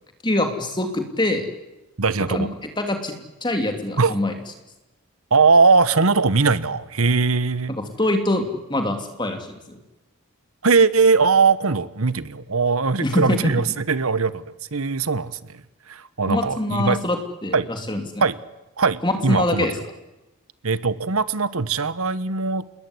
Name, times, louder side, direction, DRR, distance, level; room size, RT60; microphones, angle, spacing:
voice 1, 0.2-1.5 2.3-2.5 2.8-3.1 3.4-4.3 7.7-9.8 13.0-13.5 16.3-18.2 19.0-19.8, left 1 dB, 20° left, 5 dB, 3.0 m, -24 dB
voice 2, 2.0-2.5 4.0-4.2 5.3-7.7 10.6-14.4 14.7-15.4 15.9-17.0 17.5-17.7 18.2-18.4 18.8-19.7 20.6-22.7, right 4 dB, 70° right, 15 dB, 1.2 m, -20 dB
28.0 x 21.0 x 9.8 m, 1.0 s
head